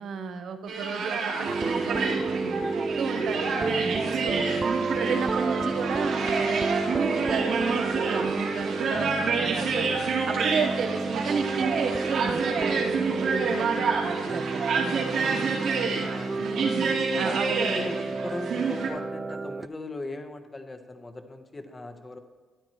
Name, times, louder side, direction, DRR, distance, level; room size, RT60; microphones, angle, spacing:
voice 1, 0.0-4.6 5.1-9.1 9.4-9.9 10.3-15.7 16.4-17.6, right 5 dB, 60° right, 8 dB, 0.9 m, -33 dB
sound 1, 0.7-18.9, right 5 dB, 85° right, 2.6 m, -29 dB
sound 2, 1.5-19.7, right 3 dB, 30° right, 0.3 m, -30 dB
voice 2, 15.7-16.8 17.6-22.2, left 2 dB, 20° left, 7 dB, 1.0 m, -39 dB
13.5 x 9.6 x 3.2 m, 1.3 s
cardioid pair, 90°, 0 cm